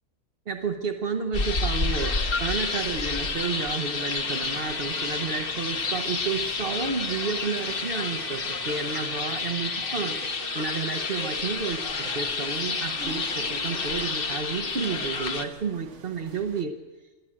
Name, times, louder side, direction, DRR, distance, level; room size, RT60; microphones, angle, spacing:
voice 1, 0.5-10.2 10.5-16.8, right 5 dB, 45° right, 4 dB, 1.1 m, -31 dB
sound 1, 1.3-15.5, left 4 dB, 45° left, 1.3 m, -30 dB
sound 2, 2.0-16.6, right 6 dB, 60° right, 1.4 m, -45 dB
27.0 x 11.5 x 8.7 m, 1.3 s
omnidirectional pair, 1.4 m